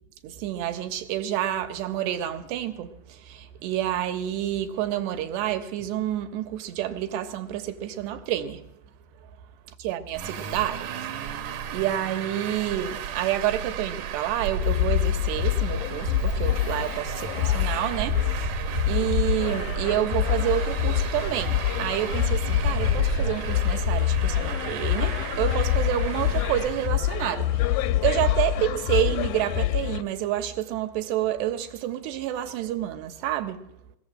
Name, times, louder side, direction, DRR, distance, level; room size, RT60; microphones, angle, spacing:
voice 1, 0.2-8.6 9.7-11.4 11.7-33.7, right 12 dB, 80° right, 3.5 m, -29 dB
Traffic noise roadway noise, 10.1-26.9, right 8 dB, 65° right, 2.2 m, -33 dB
sound 1, 14.6-30.0, left 13 dB, 75° left, 2.4 m, -26 dB
22.0 x 18.0 x 7.7 m
omnidirectional pair, 4.8 m